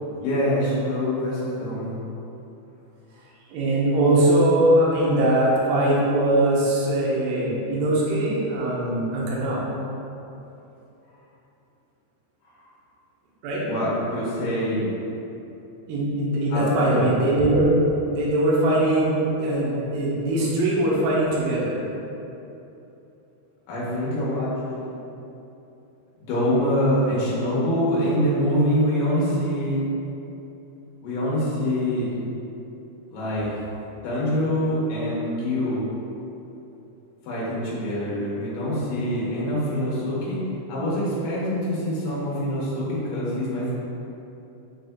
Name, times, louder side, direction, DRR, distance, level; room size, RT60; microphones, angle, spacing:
voice 1, 0.2-1.9 13.7-14.9 16.5-17.1 23.7-24.8 26.2-29.8 31.0-32.2 33.1-33.5 34.0-35.8 37.2-40.4 40.7-43.7, equal, 70° left, -8 dB, 2.2 m, -25 dB
voice 2, 3.5-9.7 13.4-13.6 15.9-17.7 18.1-21.8, right 1 dB, 80° right, -6 dB, 2.0 m, -21 dB
6.3 x 3.3 x 2.2 m, 3.0 s
omnidirectional pair, 4.8 m